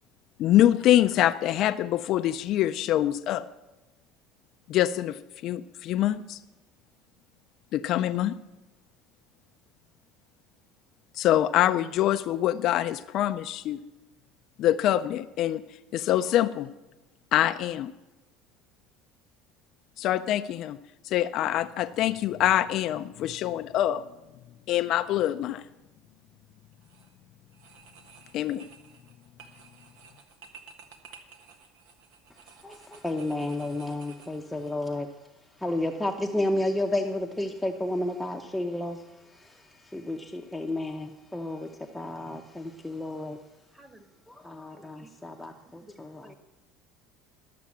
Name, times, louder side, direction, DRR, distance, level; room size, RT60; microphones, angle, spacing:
voice 1, 0.4-3.5 4.7-6.4 7.7-8.3 11.2-13.8 14.6-15.6 15.9-16.7 17.3-17.9 20.0-20.8 21.0-24.0 24.7-25.6 28.3-28.7, left 12 dB, 55° left, 10 dB, 0.4 m, -25 dB
sound 1, 26.7-27.1 27.5-34.7, right 6 dB, 80° right, 1.4 m, -53 dB
voice 2, 32.6-35.1 35.6-43.4 44.3-46.3, left 1 dB, 5° left, 2 dB, 0.8 m, -32 dB
voice 3, 43.7-44.1 44.8-45.3 45.8-46.0 46.2-46.4, right 1 dB, 10° right, 7 dB, 1.4 m, -53 dB
12.5 x 6.8 x 7.3 m, 1.0 s
supercardioid pair, 110°, 0 cm